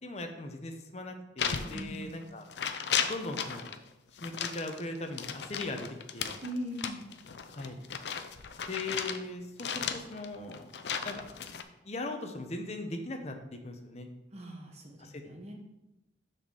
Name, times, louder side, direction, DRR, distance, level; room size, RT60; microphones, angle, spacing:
voice 1, 0.0-2.4 3.0-3.7 4.2-5.9 6.1-6.4 7.5-7.8 8.7-10.7 11.0-11.2 11.8-13.4 13.6-14.1 15.0-15.2, left 2 dB, 35° left, 5 dB, 0.8 m, -39 dB
sound 1, 1.4-2.2 2.5-3.8 4.2-9.2 9.6-11.6, left 7 dB, 70° left, 0.5 m, -35 dB
voice 2, 1.7-2.0 6.4-7.1 14.3-15.5, equal, 35° right, 0 dB, 1.1 m, -40 dB
6.5 x 4.2 x 6.3 m, 0.96 s
head